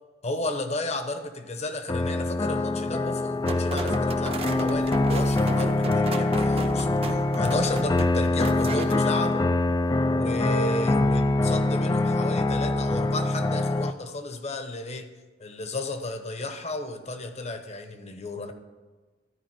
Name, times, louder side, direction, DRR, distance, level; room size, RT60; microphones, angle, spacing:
voice 1, 0.2-9.5 10.1-15.1 15.4-18.5, left 2 dB, 35° left, 7 dB, 1.0 m, -33 dB
sound 1, 1.9-13.9, left 2 dB, 20° left, 0.3 m, -24 dB
sound 2, 3.5-9.0, right 3 dB, 30° right, 0.7 m, -35 dB
13.0 x 5.1 x 7.5 m, 1.3 s
head